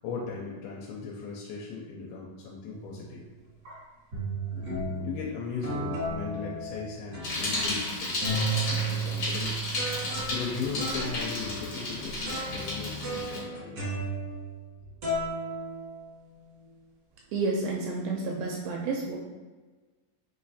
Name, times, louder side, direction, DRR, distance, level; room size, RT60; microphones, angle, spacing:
voice 1, 0.0-3.2 4.4-9.6 9.9-13.8, left 5 dB, 85° left, -3 dB, 2.4 m, -38 dB
sound 1, 2.7-3.0 3.6-3.7 4.1-5.2 5.6-7.9 8.2-14.7 15.0-16.4, right 2 dB, 65° right, 1.0 m, -34 dB
Bicycle, 7.2-13.4, left 2 dB, 65° left, 1.2 m, -33 dB
voice 2, 17.3-19.2, right 3 dB, 80° right, 0 dB, 2.1 m, -30 dB
5.6 x 3.1 x 2.7 m, 1.3 s
omnidirectional pair, 4.4 m